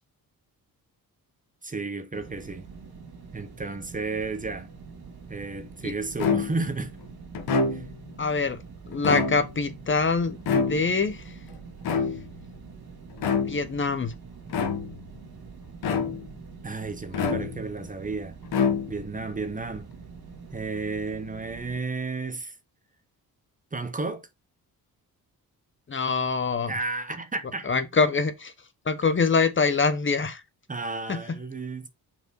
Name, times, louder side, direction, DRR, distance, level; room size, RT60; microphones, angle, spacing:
voice 1, 1.6-2.7 3.3-4.7 5.3-6.9 7.7-7.8 16.6-18.4 18.9-19.9 20.5-22.6 23.7-24.3 26.7-27.7 30.7-31.9, right 3 dB, 20° right, 1.0 m, -32 dB
sound 1, 2.1-21.8, right 5 dB, 75° right, 2.2 m, -45 dB
sound 2, 6.2-6.8 7.3-8.1 8.9-9.7 10.5-11.1 11.8-12.5 13.2-13.7 14.5-15.1 15.8-16.4 17.1-17.8 18.5-19.2, left 5 dB, 90° left, 1.6 m, -27 dB
voice 2, 8.2-8.6 8.9-11.3 13.4-14.1 25.9-26.7 27.7-28.5 28.9-30.4 31.1-31.2, left 4 dB, 35° left, 0.9 m, -24 dB
5.5 x 4.6 x 4.6 m
cardioid pair, 100°, 37 cm